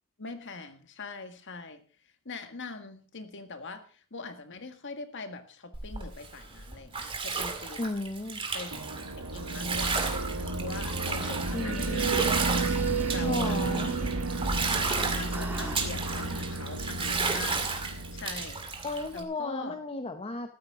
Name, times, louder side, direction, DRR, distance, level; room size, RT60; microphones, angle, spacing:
voice 1, 0.2-7.9 8.5-8.7 9.2-12.5 13.1-14.1 15.0-17.6 18.1-18.8 19.1-19.8, left 3 dB, 60° left, 8 dB, 1.7 m, -43 dB
Bathtub (filling or washing), 5.7-19.2, right 4 dB, 25° right, 2.1 m, -33 dB
voice 2, 7.8-8.4 11.5-12.3 13.2-13.9 18.8-20.5, left 2 dB, 25° left, 5 dB, 1.0 m, -34 dB
sound 1, 8.7-18.9, right 3 dB, 75° right, 1.6 m, -32 dB
sound 2, 12.5-15.0 15.3-15.9, right 1 dB, 10° right, 2.2 m, -40 dB
14.0 x 13.5 x 3.7 m, 0.39 s
head